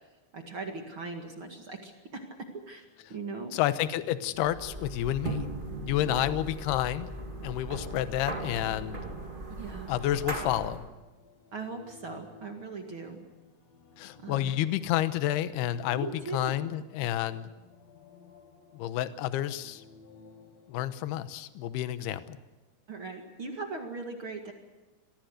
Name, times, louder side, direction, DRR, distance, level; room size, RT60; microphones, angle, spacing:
voice 1, 0.3-2.8 3.1-3.5 6.1-6.2 9.6-9.9 11.5-13.2 14.2-14.5 15.9-16.5 22.9-24.5, right 3 dB, 50° right, 3 dB, 1.5 m, -39 dB
sound 1, 2.8-21.5, left 4 dB, 50° left, 2.2 m, -56 dB
voice 2, 3.5-5.5 5.9-7.2 7.4-9.0 9.9-10.9 14.0-17.5 18.7-19.8 20.7-22.4, left 13 dB, 75° left, 12 dB, 2.6 m, -30 dB
sound 2, 4.4-10.9, right 1 dB, 30° right, 0.9 m, -38 dB
26.0 x 20.5 x 6.6 m, 1.1 s
omnidirectional pair, 5.5 m